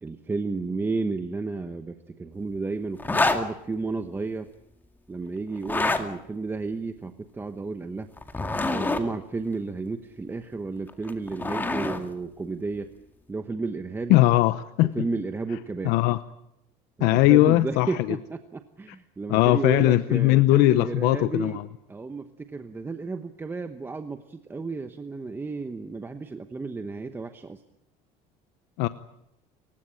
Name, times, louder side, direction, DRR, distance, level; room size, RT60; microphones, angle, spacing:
voice 1, 0.0-4.5 5.1-8.1 8.7-12.9 13.3-14.2 14.9-15.9 17.0-21.6 21.9-27.6, right 3 dB, 15° right, 8 dB, 1.0 m, -32 dB
sound 1, 3.0-3.4 5.6-6.0 8.2-9.0 10.9-12.0, left 2 dB, 10° left, 2.1 m, -26 dB
voice 2, 14.1-14.9 15.8-16.2 17.0-17.9 19.3-21.6 28.8-28.9, left 17 dB, 80° left, 13 dB, 0.9 m, -19 dB
28.5 x 16.5 x 9.0 m, 0.83 s
cardioid pair, 150°, 16 cm